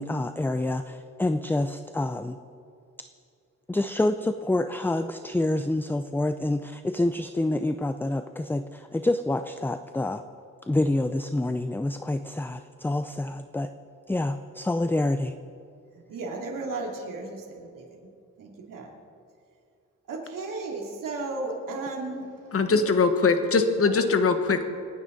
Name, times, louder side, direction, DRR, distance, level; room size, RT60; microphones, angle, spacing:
voice 1, 0.0-2.4 3.7-10.2 10.6-13.7 14.1-15.3, left 2 dB, 5° left, 9 dB, 0.3 m, -27 dB
voice 2, 16.1-17.9 18.4-18.9 20.1-22.3 22.6-22.8 24.3-24.4, right 3 dB, 85° right, -1 dB, 2.9 m, -34 dB
voice 3, 22.5-24.7, left 4 dB, 45° left, 7 dB, 1.3 m, -22 dB
28.0 x 9.7 x 4.0 m, 2.5 s
wide cardioid pair, 120°, 32 cm